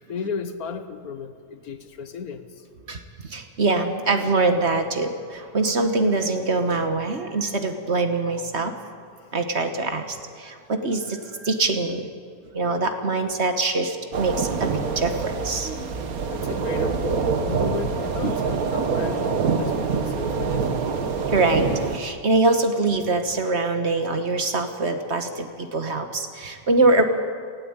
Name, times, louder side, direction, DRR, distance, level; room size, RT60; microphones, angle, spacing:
voice 1, 0.0-2.7 9.2-9.3 11.2-11.3 16.3-20.8, left 5 dB, 70° left, 10 dB, 1.5 m, -34 dB
voice 2, 2.9-8.7 9.3-12.1 12.5-16.1 18.2-18.3 21.2-27.0, right 3 dB, 45° right, 7 dB, 1.4 m, -24 dB
sound 1, 14.1-22.0, right 5 dB, 65° right, 1.7 m, -25 dB
18.5 x 16.0 x 8.9 m, 2.1 s
omnidirectional pair, 1.6 m